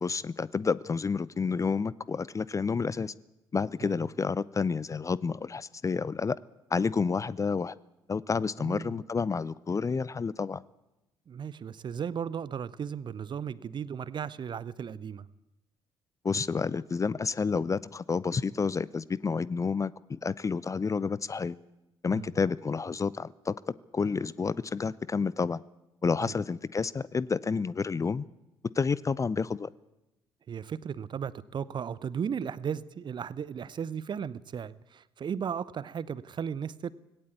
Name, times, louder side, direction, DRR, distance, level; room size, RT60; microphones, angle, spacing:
voice 1, 0.0-3.1 3.5-6.4 6.7-7.8 8.1-10.6 16.2-21.6 22.0-23.5 23.9-25.6 26.0-28.3 28.8-29.7, left 5 dB, 25° left, 21 dB, 0.6 m, -29 dB
voice 2, 8.6-9.0 11.3-15.3 22.1-22.3 26.2-26.3 30.5-36.9, right 7 dB, 40° right, 19 dB, 0.8 m, -36 dB
19.0 x 17.5 x 8.3 m, 0.93 s
figure-of-eight pair, 45°, 12 cm